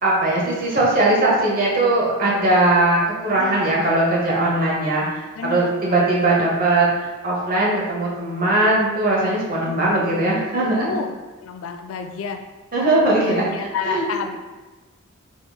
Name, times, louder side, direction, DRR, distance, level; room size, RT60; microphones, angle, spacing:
voice 1, 0.0-5.0 5.4-10.9 12.7-13.4 13.8-14.0, right 2 dB, 45° right, -4 dB, 0.9 m, -19 dB
voice 2, 3.4-3.9 5.4-6.1 9.6-9.9 10.8-11.1 11.4-12.4 13.2-14.4, left 5 dB, 75° left, 6 dB, 0.4 m, -30 dB
4.0 x 3.6 x 2.3 m, 1.3 s
head